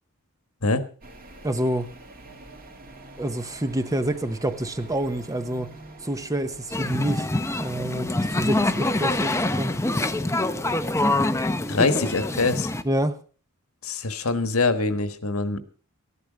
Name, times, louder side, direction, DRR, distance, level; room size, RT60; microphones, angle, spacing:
sound 1, 1.0-10.3, right 2 dB, 40° right, 2.5 m, -47 dB
voice 1, 1.4-1.9 3.2-5.8 6.0-7.3 7.6-9.8 12.8-13.2, right 1 dB, 15° right, 0.8 m, -27 dB
sound 2, 6.7-12.8, left 2 dB, 15° left, 0.7 m, -25 dB
voice 2, 11.7-12.7 13.8-15.6, left 3 dB, 75° left, 1.4 m, -24 dB
14.5 x 11.5 x 5.1 m
head